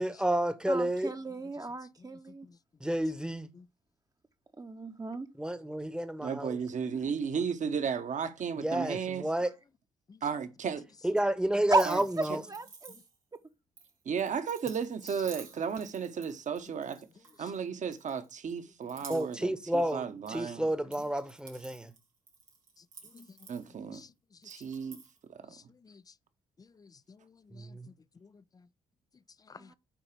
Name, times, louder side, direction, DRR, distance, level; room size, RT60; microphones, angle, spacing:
voice 1, 0.0-1.1 2.8-3.5 5.4-6.6 8.6-9.5 11.0-12.4 19.1-21.9 27.5-27.9, right 1 dB, 5° right, 1.0 m, -30 dB
voice 2, 0.7-2.5 4.6-5.3 11.7-11.8 12.2-12.9 13.3-13.4 29.6-29.7, right 2 dB, 20° right, 0.9 m, -34 dB
voice 3, 6.2-9.2 10.2-10.8 11.9-12.0 12.3-12.4 14.0-17.1 17.4-20.7 23.5-24.0 24.4-25.0 25.3-25.5, right 6 dB, 45° right, 1.2 m, -34 dB
sound 1, 11.7-13.4 13.8-17.6 17.9-18.5 18.8-20.4 20.7-24.0 24.4-25.2, right 5 dB, 90° right, 1.3 m, -52 dB
voice 4, 25.5-26.0 26.6-27.9 28.2-28.4 29.5-29.7, left 5 dB, 20° left, 0.4 m, -54 dB
7.6 x 4.8 x 5.0 m
figure-of-eight pair, 45°, 17 cm